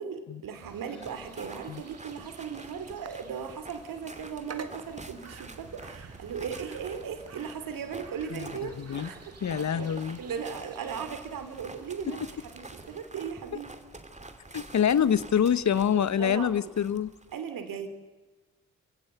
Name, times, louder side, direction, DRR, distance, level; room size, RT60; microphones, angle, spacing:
voice 1, 0.0-8.8 9.1-9.9 10.2-13.7 15.9-16.7 17.3-17.9, right 7 dB, 80° right, 8 dB, 2.8 m, -37 dB
sound 1, 0.5-13.0, right 5 dB, 50° right, 1.9 m, -50 dB
sound 2, 1.0-17.4, right 2 dB, 20° right, 2.8 m, -48 dB
voice 2, 8.3-9.1 9.4-10.2 14.5-17.1, left 8 dB, 55° left, 17 dB, 1.0 m, -26 dB
27.0 x 16.5 x 8.0 m, 1.3 s
supercardioid pair, 45°, 33 cm